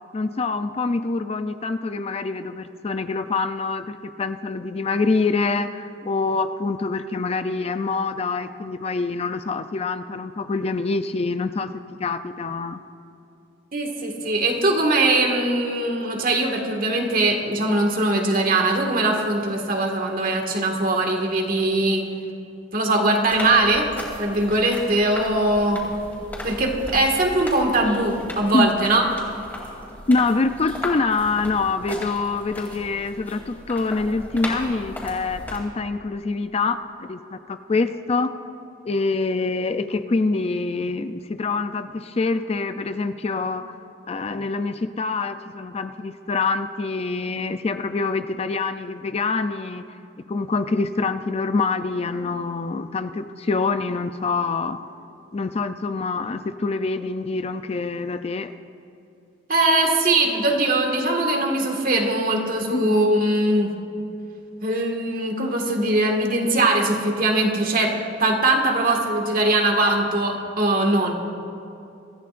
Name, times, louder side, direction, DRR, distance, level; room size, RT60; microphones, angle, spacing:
voice 1, 0.1-11.7 12.0-12.8 28.5-28.9 30.1-38.3 38.8-43.8 44.1-49.8 50.3-54.8 55.3-58.5 62.7-63.0, left 3 dB, 35° left, 10 dB, 0.4 m, -25 dB
voice 2, 13.7-22.0 22.7-23.9 24.2-25.8 26.4-29.1 59.5-63.7 64.6-67.9 68.2-71.1, right 2 dB, 50° right, 1 dB, 1.8 m, -21 dB
sound 1, 23.3-35.6, left 1 dB, 10° left, 3.5 m, -36 dB
25.0 x 14.5 x 2.5 m, 2.8 s
head